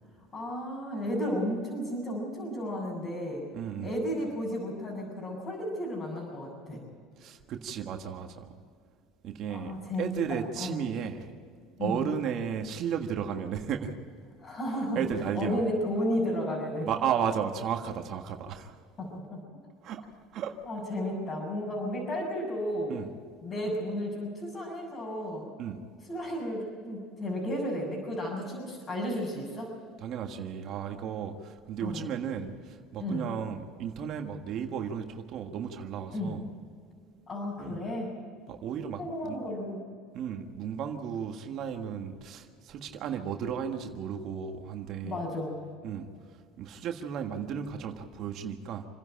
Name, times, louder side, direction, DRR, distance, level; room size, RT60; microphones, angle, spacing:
voice 1, 0.3-3.4 3.8-6.8 9.5-10.8 11.8-12.1 14.4-15.0 15.3-16.9 19.0-19.4 20.7-22.9 23.4-25.5 26.1-29.7 31.8-32.0 33.0-33.3 36.1-36.4 37.3-38.1 39.0-39.8 45.0-45.6, equal, 35° left, -5 dB, 6.5 m, -33 dB
voice 2, 3.5-4.0 7.2-8.5 9.2-11.3 11.8-13.9 14.9-15.6 16.8-18.8 19.8-20.0 20.3-20.5 22.9-23.1 25.6-25.8 30.0-36.4 37.6-37.8 38.5-39.4 40.1-45.2 45.8-46.1 46.6-48.9, right 8 dB, 55° right, 5 dB, 1.6 m, -34 dB
28.0 x 11.0 x 8.9 m, 2.1 s
supercardioid pair, 110°, 0 cm